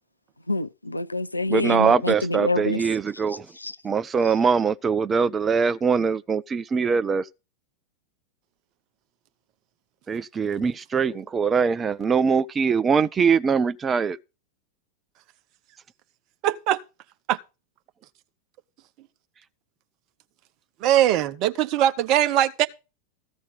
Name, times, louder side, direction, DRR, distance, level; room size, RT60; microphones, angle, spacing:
voice 1, 0.5-2.8 3.6-3.7, left 2 dB, 85° left, 0.5 m, -26 dB
voice 2, 1.5-3.5 3.8-7.2 10.1-14.2, right 5 dB, 20° right, 0.6 m, -22 dB
voice 3, 16.4-16.8 17.3-17.4 20.8-22.7, right 12 dB, 40° right, 0.9 m, -21 dB
15.0 x 6.2 x 5.3 m
figure-of-eight pair, 90°, 0 cm